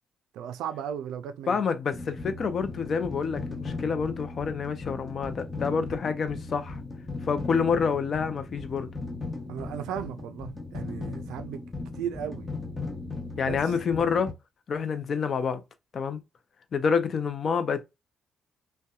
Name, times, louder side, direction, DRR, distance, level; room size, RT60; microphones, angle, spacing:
voice 1, 0.3-1.6 9.5-11.6 11.9-12.5 13.4-13.7, right 9 dB, 90° right, 0.3 m, -36 dB
voice 2, 1.5-6.8 7.3-8.9 13.4-14.3 14.7-15.6 15.9-16.2 16.7-17.8, left 6 dB, 50° left, 0.4 m, -28 dB
sound 1, 1.9-14.3, left 3 dB, 20° left, 0.9 m, -37 dB
2.7 x 2.1 x 2.3 m
cardioid pair, 90°, 0 cm